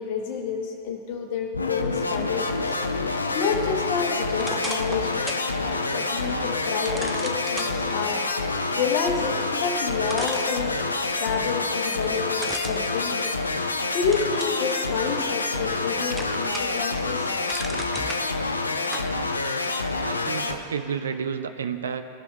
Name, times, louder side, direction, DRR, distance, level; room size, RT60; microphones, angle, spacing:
voice 1, 0.0-2.5 3.3-5.2 5.6-8.2 8.8-13.3 13.9-17.3, left 6 dB, 50° left, 3 dB, 1.0 m, -29 dB
sound 1, 1.5-20.6, left 3 dB, 80° left, 0.4 m, -27 dB
sound 2, 4.4-5.5 5.9-6.0 6.9-7.7 9.5-9.6 10.1-11.1 12.4-13.7 14.1-14.6 15.1-15.8 16.1-16.8 17.2-18.2 18.9-19.1, right 1 dB, 5° right, 0.6 m, -36 dB
voice 2, 20.0-22.1, right 7 dB, 65° right, 9 dB, 0.4 m, -31 dB
15.0 x 5.5 x 3.3 m, 2.7 s
figure-of-eight pair, 90°, 0 cm